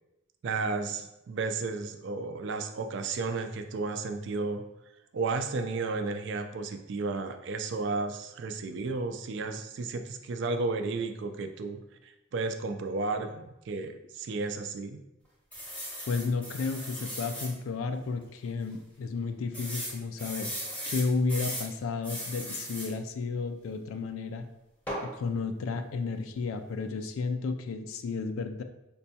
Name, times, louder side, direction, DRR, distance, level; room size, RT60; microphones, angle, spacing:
voice 1, 0.4-4.6 5.1-15.0, right 3 dB, 55° right, 7 dB, 0.3 m, -33 dB
sound 1, 15.5-17.5 18.1-18.2 18.4-18.5 19.5-21.7 22.0-22.9 24.9-25.1, equal, 5° left, 0.7 m, -37 dB
voice 2, 16.1-20.5 20.9-24.4 25.0-28.6, left 4 dB, 80° left, 7 dB, 0.3 m, -32 dB
5.1 x 2.2 x 2.7 m, 0.91 s
head